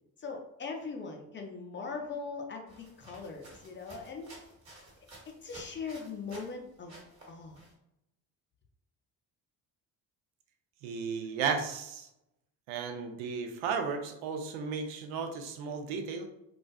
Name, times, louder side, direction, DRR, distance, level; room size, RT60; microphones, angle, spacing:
voice 1, 0.2-4.3 5.4-6.9 7.3-7.6, left 4 dB, 25° left, 2 dB, 0.5 m, -40 dB
sound 1, 2.7-6.6 6.9-7.7, right 1 dB, 30° right, 1.3 m, -53 dB
voice 2, 10.8-12.1 12.7-16.3, right 5 dB, 70° right, 6 dB, 0.6 m, -34 dB
2.4 x 2.3 x 2.2 m, 0.83 s
hypercardioid pair, 55°, 50 cm